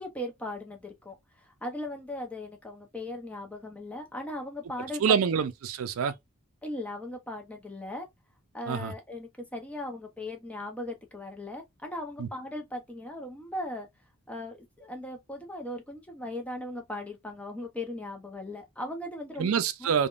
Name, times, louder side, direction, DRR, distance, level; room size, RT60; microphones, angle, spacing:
voice 1, 0.0-5.2 6.6-8.1 8.5-13.9 14.3-19.9, left 1 dB, 5° left, 0.6 m, -38 dB
voice 2, 5.0-6.1 8.7-8.9 12.2-12.3 19.4-20.1, right 7 dB, 75° right, 0.4 m, -26 dB
3.4 x 2.2 x 2.4 m
head